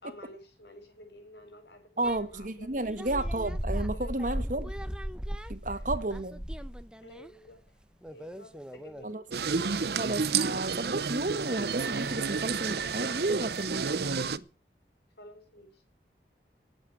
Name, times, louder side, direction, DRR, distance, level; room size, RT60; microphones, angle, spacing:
voice 1, 0.0-3.3 3.8-4.6 5.7-5.9 7.0-7.8 8.1-9.2 15.2-15.8, left 1 dB, 75° left, 6.9 m, -51 dB
sound 1, 2.0-7.3 8.0-9.0, equal, 5° right, 0.8 m, -36 dB
voice 2, 2.0-4.7 5.5-6.4 9.0-9.2 9.9-14.4, right 2 dB, 45° right, 1.5 m, -32 dB
sound 2, 9.3-14.4, right 5 dB, 70° right, 0.8 m, -30 dB
18.0 x 8.1 x 9.0 m
head